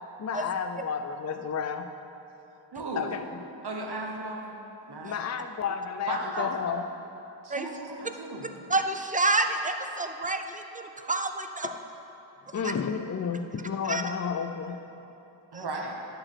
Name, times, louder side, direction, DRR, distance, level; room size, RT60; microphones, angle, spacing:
voice 1, 0.2-1.9 3.0-3.2 5.0-6.8 11.6-11.8 12.5-14.9, left 6 dB, 40° left, 8 dB, 0.4 m, -31 dB
voice 2, 2.7-3.1 3.6-4.6 4.9-5.3 6.1-6.5 7.4-8.5 15.5-15.9, right 2 dB, 55° right, 0 dB, 1.0 m, -36 dB
voice 3, 8.7-11.7 12.6-12.7 13.9-14.0 15.5-15.6, right 2 dB, 15° right, 6 dB, 0.5 m, -28 dB
11.5 x 5.2 x 4.4 m, 2.9 s
wide cardioid pair, 40°, 46 cm